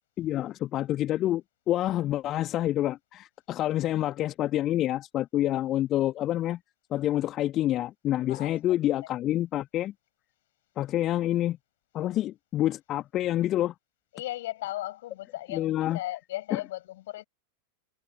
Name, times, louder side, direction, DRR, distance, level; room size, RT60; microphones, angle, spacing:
voice 1, 0.2-6.6 6.9-9.9 10.8-11.6 11.9-13.7 15.5-16.0 16.5-16.6, left 13 dB, 35° left, 1.5 m, -27 dB
voice 2, 14.1-17.3, left 15 dB, 55° left, 7.6 m, -36 dB
figure-of-eight pair, 90°, 0 cm